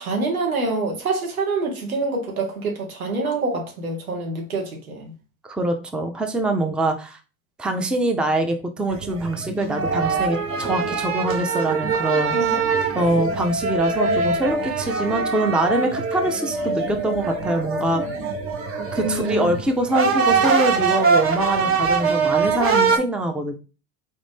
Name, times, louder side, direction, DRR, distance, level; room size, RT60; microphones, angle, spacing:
voice 1, 0.0-5.1 12.3-12.6 19.0-19.5, right 3 dB, 90° right, 1.3 m, -26 dB
voice 2, 5.4-7.2 7.6-12.6 12.9-18.0 18.9-23.5, right 1 dB, ahead, 0.4 m, -24 dB
sound 1, 8.9-23.0, right 4 dB, 35° right, 0.8 m, -23 dB
4.1 x 2.5 x 3.4 m
hypercardioid pair, 75°, 41 cm